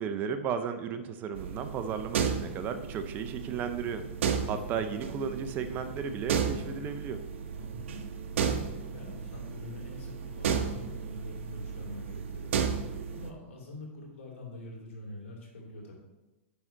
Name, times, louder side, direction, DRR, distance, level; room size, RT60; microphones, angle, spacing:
voice 1, 0.0-7.2, right 7 dB, 25° right, 9 dB, 0.5 m, -34 dB
sound 1, 1.3-13.3, right 6 dB, 70° right, 0.8 m, -34 dB
voice 2, 4.3-4.8 7.6-8.0 8.4-12.7 13.1-16.0, left 2 dB, 80° left, -2 dB, 2.7 m, -44 dB
9.6 x 3.8 x 4.4 m, 1.1 s
hypercardioid pair, 145°, 7 cm